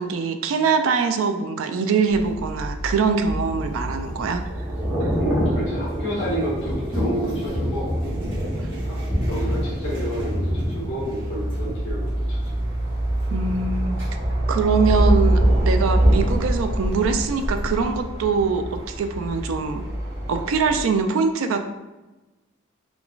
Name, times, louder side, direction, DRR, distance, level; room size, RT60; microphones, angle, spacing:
voice 1, 0.0-4.4 5.0-5.1 8.6-8.7 13.3-14.0 14.5-19.8 20.3-21.6, right 5 dB, 75° right, 7 dB, 0.3 m, -23 dB
sound 1, 2.1-20.8, right 1 dB, 25° right, 1.2 m, -25 dB
Thunder / Rain, 3.0-13.0 13.3-13.6, equal, 10° right, 0.8 m, -28 dB
voice 2, 5.2-8.0 8.9-9.0 9.3-12.6, right 1 dB, 65° left, -7 dB, 1.1 m, -30 dB
3.6 x 2.4 x 2.3 m, 1.1 s
head